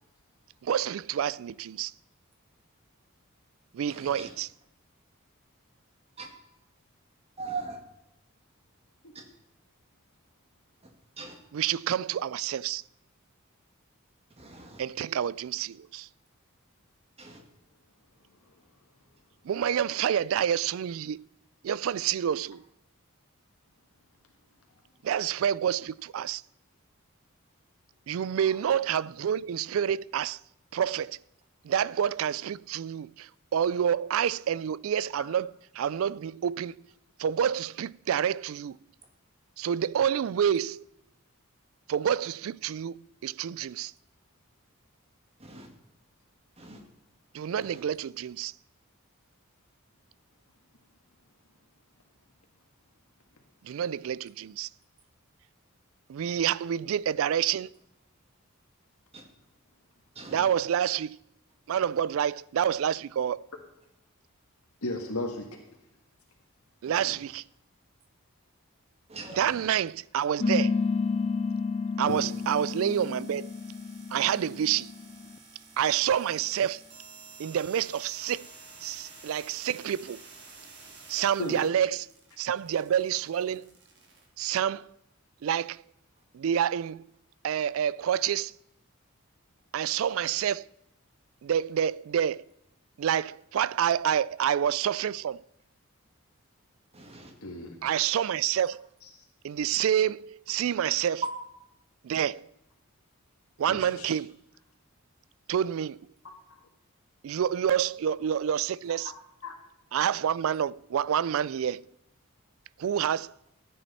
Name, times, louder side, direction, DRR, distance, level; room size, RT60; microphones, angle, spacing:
voice 1, 0.6-1.9 3.7-4.5 11.5-12.8 14.8-16.1 19.4-21.2 21.6-22.6 25.0-26.4 28.1-30.4 30.7-31.2 31.6-36.8 37.2-38.8 39.6-40.8 41.9-43.9 47.3-48.5 53.6-54.7 56.1-57.7 60.3-61.2 61.7-63.5 66.8-67.4 69.3-70.8 72.0-73.5 74.1-74.9 75.8-76.8 77.4-78.5 78.8-80.2 81.1-82.1 82.4-83.7 84.4-84.9 85.4-85.8 86.3-87.1 87.4-88.5 89.7-90.7 91.4-92.5 93.0-95.4 97.8-98.9 99.4-101.2 102.0-102.5 103.6-104.3 105.5-106.1 107.2-109.1 109.9-111.9 112.8-113.3, right 9 dB, 70° right, 0.3 m, -28 dB
voice 2, 3.9-4.3 6.2-6.3 7.4-7.8 9.1-9.2 11.2-11.4 14.4-14.8 17.2-17.4 45.4-45.7 46.6-46.8 47.6-47.8 59.1-59.2 60.2-60.5 66.8-67.1 69.1-69.7 96.9-97.3, right 4 dB, 30° right, 2.0 m, -41 dB
voice 3, 64.8-65.5 72.1-72.2 81.4-81.7 97.4-97.8 103.7-104.1 106.2-106.6 109.4-109.6, left 1 dB, 85° left, 1.6 m, -35 dB
sound 1, 70.4-75.3, left 4 dB, 30° left, 0.3 m, -30 dB
sound 2, 72.1-84.2, right 3 dB, 50° right, 3.1 m, -51 dB
14.5 x 9.2 x 4.2 m
head